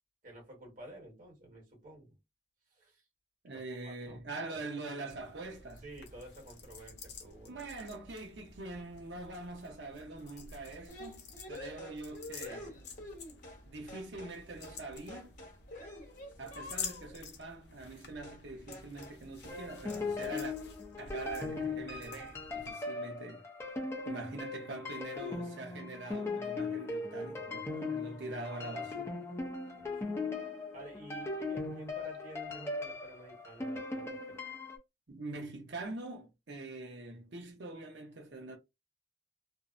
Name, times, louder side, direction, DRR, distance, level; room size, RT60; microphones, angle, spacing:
voice 1, 0.2-2.2 2.7-3.0 3.5-4.2 4.5-4.6 5.8-7.7 27.1-28.0 29.8-30.2 30.7-34.4, right 1 dB, 50° right, 1.3 m, -52 dB
voice 2, 3.4-5.8 7.5-12.8 13.7-15.3 16.4-20.6 21.0-23.5 24.1-29.2 35.1-38.6, right 2 dB, 85° right, 0.8 m, -44 dB
sound 1, 5.1-22.7, left 5 dB, 70° left, 0.7 m, -50 dB
sound 2, 10.9-13.6 13.9-14.4 14.6-14.8 15.1-17.2 18.2-18.4 18.7-19.2 19.4-19.6 19.9-20.4, left 1 dB, 50° left, 1.1 m, -48 dB
sound 3, 19.5-34.8, left 3 dB, 15° left, 0.6 m, -39 dB
2.6 x 2.1 x 2.4 m
head